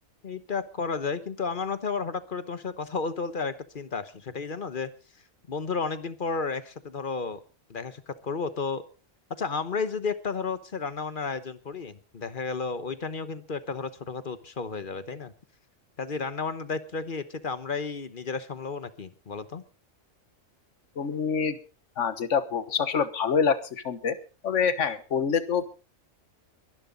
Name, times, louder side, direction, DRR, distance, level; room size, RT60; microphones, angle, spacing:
voice 1, 0.2-4.9 5.5-7.4 7.7-8.8 9.3-15.3 16.0-19.6, left 4 dB, 45° left, 13 dB, 1.1 m, -32 dB
voice 2, 21.0-21.6 22.0-24.2 24.4-25.6, left 6 dB, 65° left, 13 dB, 1.6 m, -26 dB
23.0 x 11.0 x 4.0 m, 0.35 s
omnidirectional pair, 1.3 m